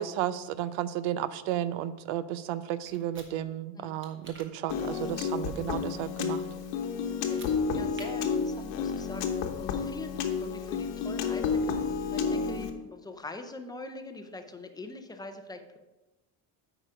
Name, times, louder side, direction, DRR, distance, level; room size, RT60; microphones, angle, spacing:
voice 1, 0.0-6.4, right 11 dB, 80° right, 15 dB, 0.6 m, -33 dB
sound 1, 2.9-3.3 4.0-4.5 7.2-7.5 7.9-8.1, right 3 dB, 25° right, 1.1 m, -48 dB
Piano, 4.7-12.7, left 6 dB, 80° left, 1.1 m, -31 dB
voice 2, 7.0-7.4 7.7-15.8, left 2 dB, 10° left, 6 dB, 0.5 m, -43 dB
8.6 x 5.0 x 5.0 m, 1.1 s
cardioid pair, 135°, 45 cm